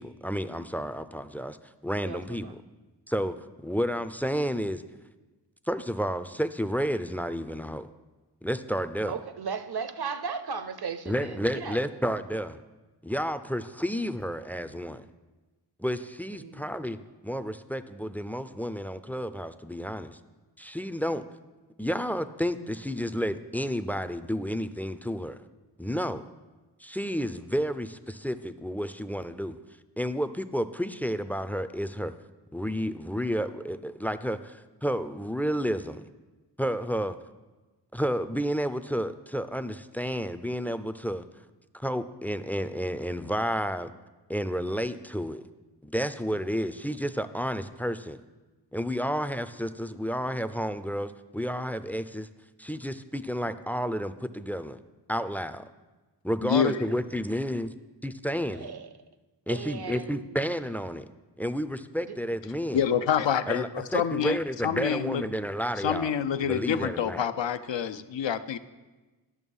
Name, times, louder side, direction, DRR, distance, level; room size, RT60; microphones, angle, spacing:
voice 1, 0.0-1.6 1.8-2.5 3.1-4.8 5.7-7.9 8.4-9.1 11.1-12.6 13.0-15.0 15.8-17.0 17.2-20.2 20.6-21.2 21.8-25.4 25.8-26.2 26.8-29.6 30.0-32.1 32.5-36.1 36.6-37.2 37.9-41.2 41.7-43.9 44.3-45.4 45.8-48.2 48.7-52.3 52.6-54.8 55.1-55.7 56.2-57.7 58.0-58.7 59.5-61.1 61.4-62.8 63.5-66.1 66.4-67.3, equal, 5° left, 12 dB, 0.3 m, -31 dB
voice 2, 2.0-2.5 9.1-11.8 16.4-16.6 58.5-58.9 59.5-60.4, right 5 dB, 60° right, 11 dB, 0.7 m, -36 dB
voice 3, 56.4-56.8 62.7-64.4 64.6-65.2 65.8-68.6, left 8 dB, 90° left, 11 dB, 0.5 m, -27 dB
11.0 x 6.5 x 5.4 m, 1.2 s
wide cardioid pair, 65°, 42 cm